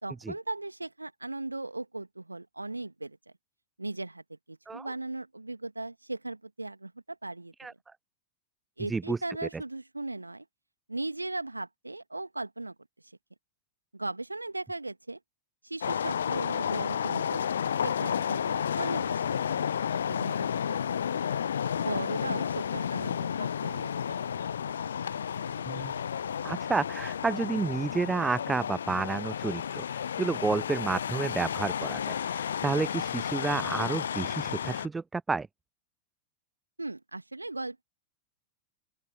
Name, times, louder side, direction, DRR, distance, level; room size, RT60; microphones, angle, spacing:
voice 1, 0.0-3.2 3.8-7.8 8.8-10.5 10.9-12.7 13.9-15.2 15.6-17.4 17.8-19.5 20.1-20.8 21.1-21.2 21.7-24.3 36.8-37.8, right 2 dB, 85° right, 2.2 m, -38 dB
sound 1, 15.8-34.9, left 8 dB, 65° left, 0.4 m, -32 dB
Singing / Musical instrument, 16.0-28.5, left 2 dB, 85° left, 5.5 m, -47 dB
voice 2, 26.4-35.5, right 4 dB, 10° right, 0.4 m, -30 dB
open air
figure-of-eight pair, 90°, 0 cm